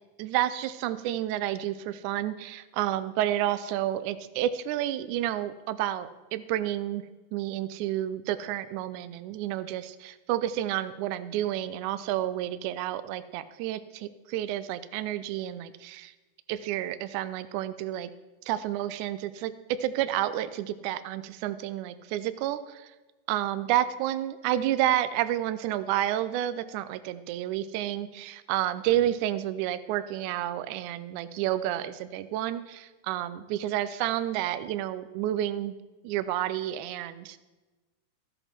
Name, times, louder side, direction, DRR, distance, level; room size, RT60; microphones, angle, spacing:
voice 1, 0.2-7.0 7.3-16.1 16.5-18.1 18.5-22.9 23.3-35.7 36.0-37.4, right 12 dB, 80° right, 13 dB, 1.8 m, -30 dB
14.0 x 8.0 x 4.3 m, 1.2 s
omnidirectional pair, 4.0 m